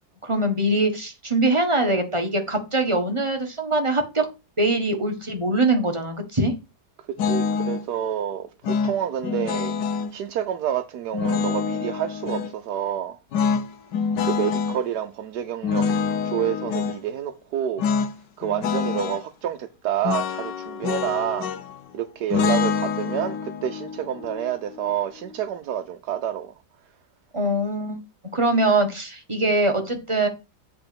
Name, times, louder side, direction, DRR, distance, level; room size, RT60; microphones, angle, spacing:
voice 1, 0.2-4.3 4.6-6.5 27.3-28.0 28.3-30.3, right 2 dB, 20° right, 1.3 m, -22 dB
voice 2, 7.0-8.5 8.8-9.7 10.1-13.2 14.2-15.9 16.2-17.8 18.4-21.5 21.9-26.5, right 10 dB, 70° right, 1.3 m, -28 dB
sound 1, 7.2-7.8 8.6-10.1 11.1-12.5 13.3-14.8 15.6-17.0 17.8-18.1 18.4-19.2 20.0-21.8 22.3-25.4, left 6 dB, 80° left, 1.4 m, -26 dB
7.9 x 4.0 x 6.9 m
omnidirectional pair, 1.8 m